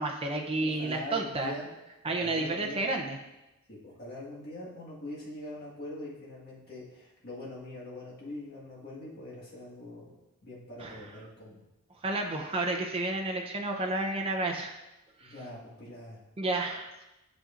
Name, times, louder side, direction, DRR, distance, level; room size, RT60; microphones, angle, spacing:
voice 1, 0.0-1.5 2.0-3.2 10.8-11.1 12.0-14.7 15.2-15.3 16.4-17.0, right 2 dB, 25° right, 2 dB, 0.6 m, -31 dB
voice 2, 0.6-1.7 2.2-2.9 3.7-10.1 10.4-11.7 15.2-16.2, left 1 dB, 45° left, -6 dB, 1.6 m, -43 dB
8.2 x 6.3 x 2.5 m, 0.98 s
head